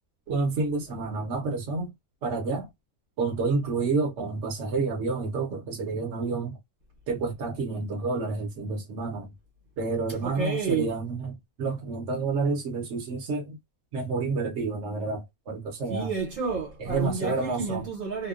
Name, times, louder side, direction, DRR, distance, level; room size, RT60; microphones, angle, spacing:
voice 1, 0.3-1.9 2.2-2.7 3.2-6.6 7.1-9.3 9.8-13.6 13.9-16.1 16.8-17.8, right 3 dB, 60° right, 1.0 m, -29 dB
voice 2, 10.2-10.9 15.9-18.3, right 5 dB, 80° right, 1.4 m, -30 dB
2.8 x 2.1 x 2.3 m
omnidirectional pair, 1.4 m